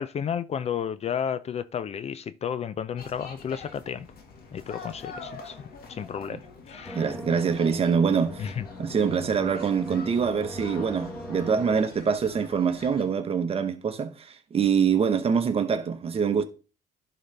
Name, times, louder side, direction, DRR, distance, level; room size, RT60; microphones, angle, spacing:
voice 1, 0.0-4.1 4.5-5.6 5.9-6.4 6.7-7.0 8.4-8.6, left 8 dB, 40° left, 0.4 m, -32 dB
sound 1, 3.0-13.0, left 4 dB, 65° left, 1.8 m, -45 dB
sound 2, 6.8-11.8, left 1 dB, 5° left, 1.1 m, -40 dB
voice 2, 6.9-8.5 8.8-16.4, right 6 dB, 35° right, 1.1 m, -25 dB
11.0 x 3.9 x 3.4 m
cardioid pair, 110°, 17 cm